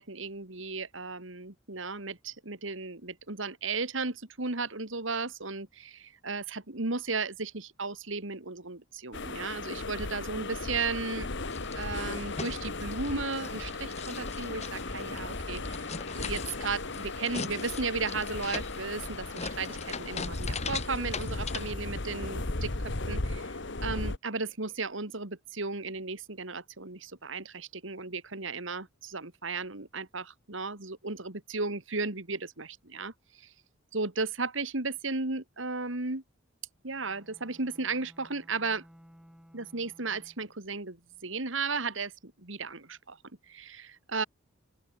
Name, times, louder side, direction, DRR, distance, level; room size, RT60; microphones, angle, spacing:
voice 1, 0.0-11.3 11.7-22.7 23.1-23.5 23.8-33.5 33.9-36.2 36.8-38.8 39.5-43.2 43.5-44.2, right 4 dB, 65° right, 2.5 m, -35 dB
sound 1, 9.1-24.2, left 2 dB, 60° left, 1.8 m, -36 dB
sound 2, 11.4-21.7, left 4 dB, 35° left, 2.5 m, -40 dB
Bowed string instrument, 36.9-40.7, equal, 5° right, 3.2 m, -58 dB
open air
head